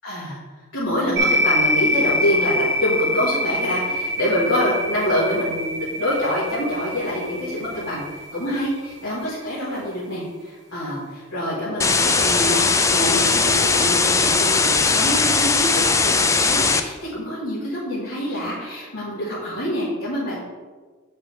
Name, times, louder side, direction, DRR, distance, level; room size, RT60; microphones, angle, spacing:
voice 1, 0.0-0.4 0.7-20.4, equal, 85° left, -9 dB, 1.8 m, -26 dB
sound 1, 1.2-8.9, equal, 55° right, 1.3 m, -25 dB
sound 2, 11.8-16.8, left 4 dB, 15° left, 0.3 m, -19 dB
7.7 x 5.2 x 3.7 m, 1.4 s
head